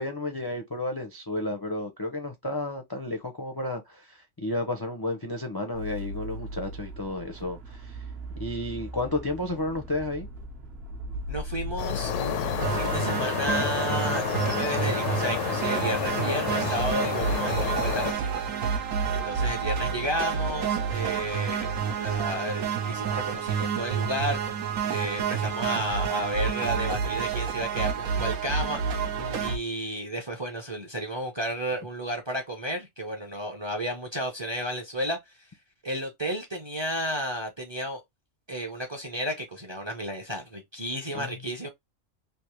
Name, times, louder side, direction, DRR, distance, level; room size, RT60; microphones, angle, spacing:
voice 1, 0.0-8.0 8.4-10.3 29.2-29.6 41.1-41.4, left 2 dB, 30° left, 0.4 m, -32 dB
sound 1, 5.7-13.0, equal, 55° right, 1.1 m, -38 dB
voice 2, 11.3-18.4 19.1-24.4 24.9-29.1 29.4-35.5 35.8-38.0 38.5-41.7, equal, 25° right, 0.6 m, -32 dB
sound 2, 11.8-18.1, left 9 dB, 70° left, 0.9 m, -30 dB
sound 3, 12.6-29.6, right 6 dB, 80° right, 1.2 m, -29 dB
3.4 x 2.7 x 3.0 m
omnidirectional pair, 1.4 m